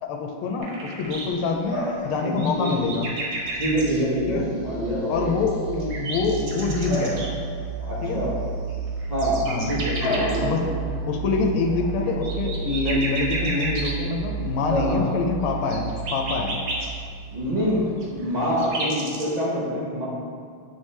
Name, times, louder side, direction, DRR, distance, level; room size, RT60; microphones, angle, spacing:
voice 1, 0.0-3.1 4.3-4.5 5.1-7.3 8.0-8.2 9.4-9.7 10.4-16.6, left 4 dB, 85° left, 2 dB, 1.5 m, -26 dB
sound 1, 0.6-1.3 2.0-4.0 5.2-7.3 8.7-10.4 12.0-13.9 15.6-16.9 18.0-19.3, right 2 dB, 70° right, 1.7 m, -32 dB
Bark / Bird vocalization bird call bird song, 1.0-18.6, left 1 dB, 35° left, 1.1 m, -38 dB
voice 2, 2.2-2.7 3.5-5.3 7.9-8.4 9.1-9.4 9.7-10.4 14.7-15.1 17.3-20.0, equal, 55° right, -7 dB, 0.4 m, -26 dB
sound 2, 3.5-17.6, right 5 dB, 25° right, 1.6 m, -32 dB
7.2 x 4.7 x 3.3 m, 2.2 s
omnidirectional pair, 2.3 m